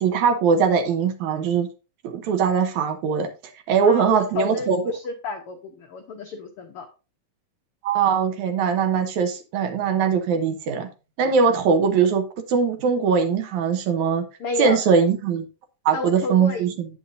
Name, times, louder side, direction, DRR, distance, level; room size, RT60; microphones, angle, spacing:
voice 1, 0.0-1.7 2.0-3.3 3.7-4.8 7.8-10.9 11.2-14.3 14.6-15.5 15.9-16.9, right 6 dB, 70° right, 6 dB, 2.1 m, -21 dB
voice 2, 3.8-6.9 14.4-14.8 15.9-16.7, left 4 dB, 80° left, 4 dB, 1.2 m, -31 dB
9.6 x 8.4 x 2.6 m, 0.30 s
omnidirectional pair, 3.8 m